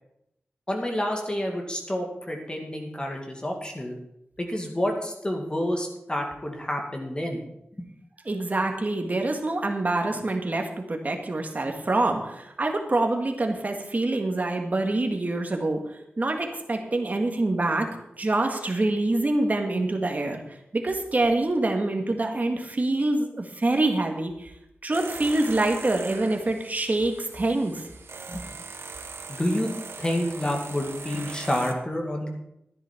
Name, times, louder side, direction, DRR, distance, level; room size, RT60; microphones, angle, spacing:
voice 1, 0.7-4.0 4.4-7.4 7.8-7.9 28.3-28.5 29.3-29.7 30.0-32.3, left 1 dB, 25° left, 2 dB, 2.1 m, -29 dB
voice 2, 8.3-15.8 16.2-17.9 18.2-24.5 24.8-27.9, right 2 dB, 40° right, 3 dB, 1.8 m, -26 dB
sound 1, 24.9-31.7, right 4 dB, 80° right, 1.0 m, -40 dB
11.5 x 10.0 x 4.5 m, 0.83 s
wide cardioid pair, 65°, 4 cm